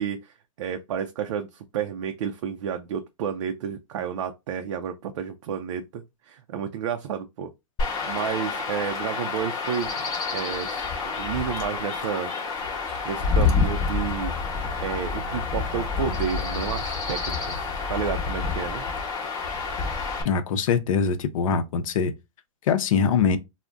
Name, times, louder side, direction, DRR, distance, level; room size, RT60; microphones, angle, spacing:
voice 1, 0.0-7.5 8.1-10.9 11.2-12.3 12.7-14.3 14.8-18.8, right 8 dB, 65° right, 0.4 m, -31 dB
Chirp tweet / Wind / Stream, 7.8-20.2, left 4 dB, 25° left, 0.8 m, -28 dB
voice 2, 20.2-22.1 22.7-23.4, left 6 dB, 75° left, 0.6 m, -23 dB
2.5 x 2.1 x 3.4 m
supercardioid pair, 155°, 17 cm